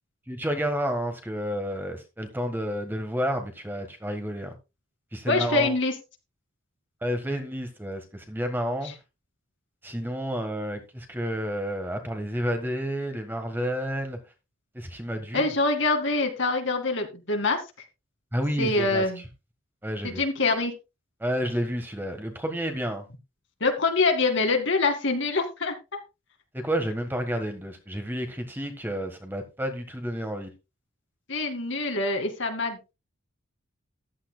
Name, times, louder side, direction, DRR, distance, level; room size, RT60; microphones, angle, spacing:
voice 1, 0.3-4.5 5.1-5.7 7.0-8.9 9.8-14.2 14.7-15.5 18.3-19.1 19.8-20.2 21.2-23.0 26.5-30.5, equal, 10° right, 1.5 m, -30 dB
voice 2, 5.3-5.9 15.3-17.6 18.6-19.2 20.0-20.7 23.6-25.7 31.3-32.9, left 3 dB, 60° left, 2.2 m, -25 dB
14.5 x 11.0 x 2.3 m
head